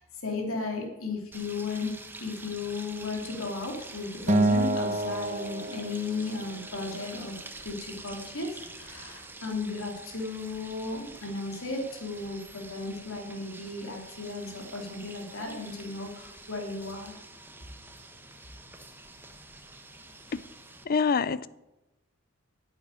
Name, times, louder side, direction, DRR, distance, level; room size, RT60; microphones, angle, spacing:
voice 1, 0.0-1.9 2.2-7.3 7.6-17.2, left 3 dB, 80° left, 3.0 m, -35 dB
sound 1, 1.3-20.8, right 2 dB, 10° right, 1.2 m, -47 dB
Acoustic guitar, 4.3-6.7, right 2 dB, 35° right, 0.9 m, -27 dB
voice 2, 20.9-21.5, left 5 dB, 45° left, 0.5 m, -25 dB
10.5 x 8.0 x 9.7 m
head